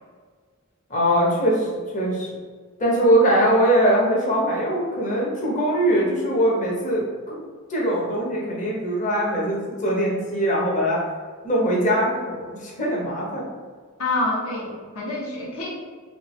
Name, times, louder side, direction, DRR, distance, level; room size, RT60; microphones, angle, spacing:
voice 1, 0.9-2.4 2.8-7.4 7.7-11.0 11.4-13.5, equal, 35° left, -4 dB, 0.8 m, -22 dB
voice 2, 14.0-15.7, left 2 dB, 70° left, -3 dB, 0.8 m, -27 dB
3.3 x 2.9 x 3.0 m, 1.5 s
head